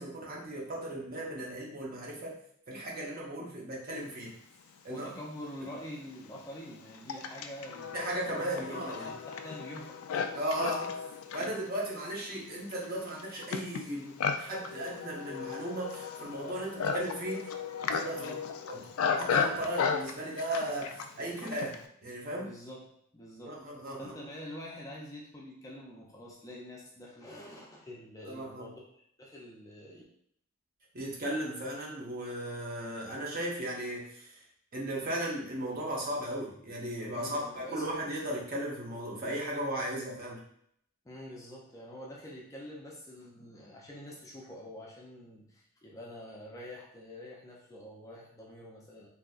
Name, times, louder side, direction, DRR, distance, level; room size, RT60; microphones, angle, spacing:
voice 1, 0.0-2.4 2.7-4.3 4.8-5.2 7.9-9.1 10.3-10.9 11.3-17.5 17.9-18.4 18.7-18.9 19.2-22.5 23.4-24.1 28.2-28.7 30.9-34.4 34.7-40.4, right 1 dB, 45° right, -3 dB, 0.8 m, -36 dB
voice 2, 4.9-8.0 8.2-10.0 11.4-11.6 18.2-18.4 22.4-23.6 24.0-30.0 37.1-37.9 41.0-49.1, equal, 15° left, -3 dB, 0.5 m, -46 dB
Livestock farm animals working animals, 5.1-5.2 5.9-21.9, left 6 dB, 80° left, 0.3 m, -35 dB
3.7 x 2.7 x 2.4 m, 0.68 s
head